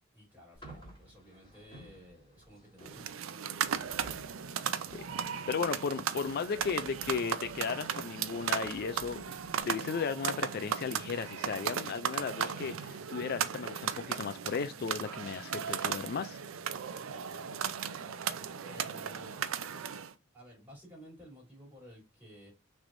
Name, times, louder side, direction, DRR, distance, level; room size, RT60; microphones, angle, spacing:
voice 1, 0.1-4.4 18.6-19.5 20.3-22.5, equal, 10° right, 3.3 m, -55 dB
sound 1, 0.5-9.6, right 1 dB, 25° left, 3.1 m, -55 dB
sound 2, 2.8-20.1, right 8 dB, 90° right, 0.5 m, -36 dB
voice 2, 4.9-9.4 9.6-16.4, left 5 dB, 50° left, 0.4 m, -35 dB
6.1 x 3.4 x 2.6 m
head